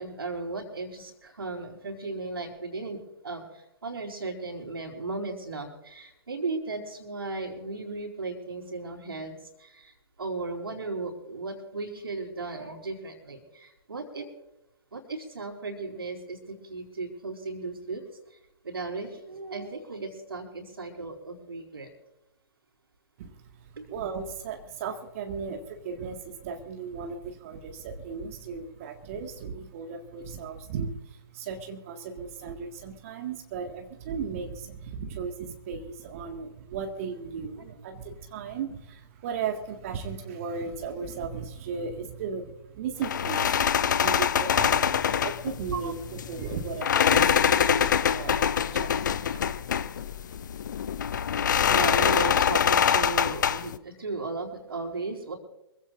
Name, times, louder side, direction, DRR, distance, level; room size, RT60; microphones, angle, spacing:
voice 1, 0.0-14.3 14.9-18.0 18.3-18.4 18.6-21.9 23.8-23.9 45.7-45.9 47.5-47.7 51.7-55.3, right 3 dB, 60° right, -4 dB, 4.3 m, -36 dB
voice 2, 23.2-49.5, right 6 dB, 35° right, 4 dB, 1.8 m, -36 dB
sound 1, 43.0-53.8, left 8 dB, 45° left, 0.7 m, -24 dB
25.5 x 16.0 x 2.5 m, 0.90 s
figure-of-eight pair, 130°, 14 cm